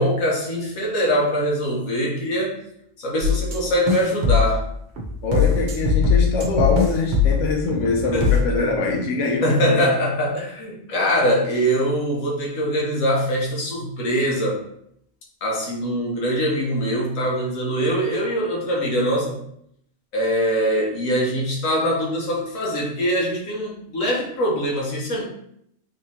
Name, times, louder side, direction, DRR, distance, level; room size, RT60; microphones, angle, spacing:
voice 1, 0.0-2.6 3.0-4.7 8.1-8.6 9.4-14.6 15.4-19.4 20.1-25.2, equal, 90° left, -2 dB, 1.3 m, -23 dB
sound 1, 3.2-3.6 3.9-4.6 5.0-8.4, left 5 dB, 60° right, 1.0 m, -20 dB
voice 2, 5.2-9.8, left 3 dB, 70° left, 0 dB, 1.0 m, -23 dB
3.8 x 3.0 x 2.7 m, 0.72 s
omnidirectional pair, 1.3 m